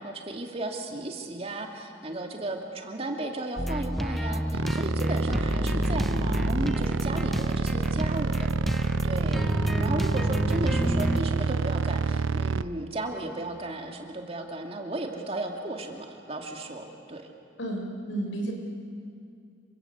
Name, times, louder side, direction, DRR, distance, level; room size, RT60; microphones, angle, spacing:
voice 1, 0.0-8.5 9.0-17.3, right 2 dB, 30° right, 3 dB, 2.6 m, -35 dB
sound 1, 3.6-11.2, equal, ahead, 0.6 m, -29 dB
sound 2, 4.5-12.6, right 4 dB, 90° right, 0.6 m, -28 dB
voice 2, 17.6-18.5, right 1 dB, 80° left, 2 dB, 5.9 m, -32 dB
28.5 x 24.0 x 8.3 m, 2.5 s
head